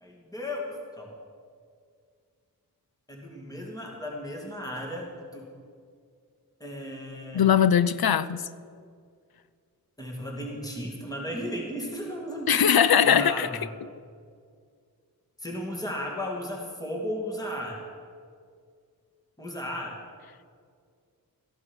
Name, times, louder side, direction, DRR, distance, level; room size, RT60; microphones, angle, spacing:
voice 1, 0.0-0.7 1.0-1.1 3.1-5.5 6.6-7.5 10.0-12.6 13.0-13.6 15.4-17.8 19.4-20.0, equal, 10° left, 2.5 m, -35 dB
voice 2, 7.3-8.5 12.5-13.5, left 8 dB, 75° left, 0.6 m, -20 dB
14.5 x 11.0 x 6.3 m
wide cardioid pair, 80°, 37 cm